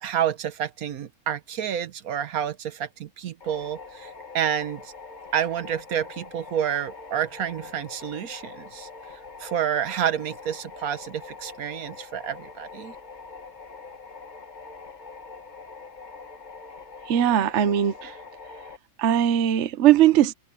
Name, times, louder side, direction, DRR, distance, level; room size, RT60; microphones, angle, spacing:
voice 1, 0.0-4.9 5.3-8.9 9.4-12.9, right 9 dB, 80° right, 1.4 m, -29 dB
sound 1, 3.4-18.8, left 4 dB, 35° left, 1.2 m, -43 dB
voice 2, 17.1-18.2 19.0-20.3, right 11 dB, 60° right, 1.0 m, -20 dB
omnidirectional pair, 1.5 m